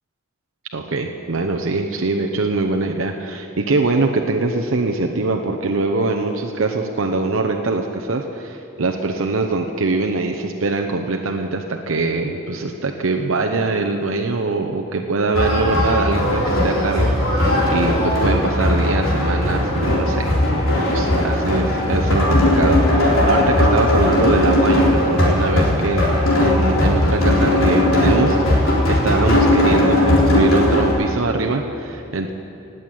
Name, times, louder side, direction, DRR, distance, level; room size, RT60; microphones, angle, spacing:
voice 1, 0.7-32.3, right 3 dB, 75° right, 3 dB, 0.9 m, -23 dB
sound 1, 15.3-30.9, left 1 dB, 85° left, 3.8 m, -17 dB
17.5 x 8.0 x 9.2 m, 2.8 s
head